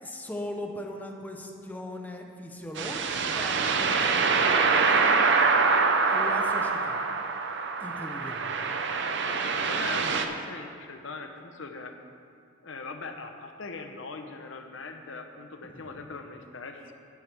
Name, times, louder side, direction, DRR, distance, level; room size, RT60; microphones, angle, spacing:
voice 1, 0.0-5.2 6.1-7.0 7.8-8.6 15.7-16.0, left 1 dB, 10° left, 2 dB, 0.7 m, -39 dB
sound 1, 2.8-10.2, right 4 dB, 60° right, 0.6 m, -25 dB
voice 2, 9.3-11.9 12.6-16.9, left 3 dB, 70° left, 5 dB, 0.9 m, -40 dB
11.0 x 10.0 x 3.5 m, 2.5 s
head